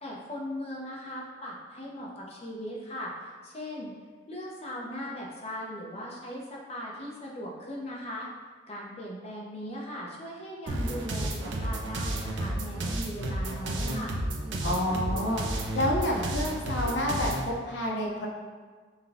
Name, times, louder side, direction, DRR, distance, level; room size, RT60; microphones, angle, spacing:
voice 1, 0.0-3.1 3.4-3.9 4.3-8.3 8.7-14.2, equal, 30° left, -4 dB, 0.8 m, -39 dB
sound 1, 10.7-17.5, right 1 dB, 70° right, 0.6 m, -31 dB
voice 2, 14.6-15.4 15.7-18.3, left 1 dB, 65° left, -1 dB, 0.7 m, -29 dB
5.6 x 2.3 x 3.5 m, 1.5 s
head